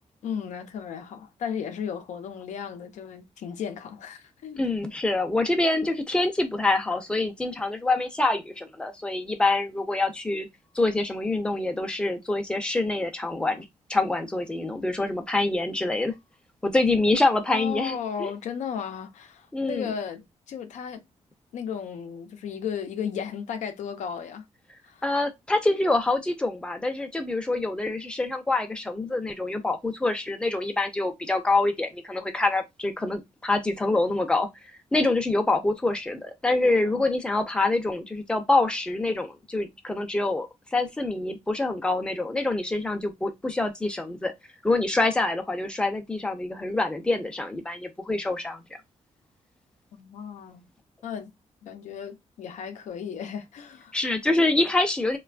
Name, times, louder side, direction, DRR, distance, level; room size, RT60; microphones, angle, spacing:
voice 1, 0.2-4.6 17.5-21.0 21.5-24.4 24.9-25.1 35.0-35.1 36.6-37.1 49.9-50.7 51.0-51.3 51.6-54.0, left 7 dB, 90° left, 0.5 m, -35 dB
voice 2, 4.6-10.5 10.7-16.1 16.6-18.3 19.5-19.9 25.0-34.5 34.9-40.5 40.7-44.3 44.6-48.6 53.9-55.2, left 2 dB, 10° left, 0.5 m, -26 dB
3.2 x 2.2 x 2.4 m
wide cardioid pair, 125°, 12 cm